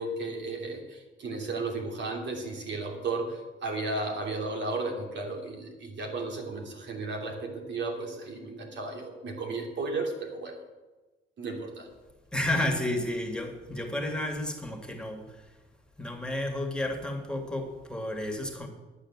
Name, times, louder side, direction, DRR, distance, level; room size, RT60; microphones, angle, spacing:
voice 1, 0.0-10.6 11.4-11.9, right 3 dB, 65° right, 2 dB, 3.0 m, -34 dB
voice 2, 12.3-15.6 16.0-18.7, left 1 dB, 5° left, 3 dB, 2.3 m, -32 dB
11.5 x 8.9 x 7.4 m, 1.2 s
cardioid pair, 90°, 20 cm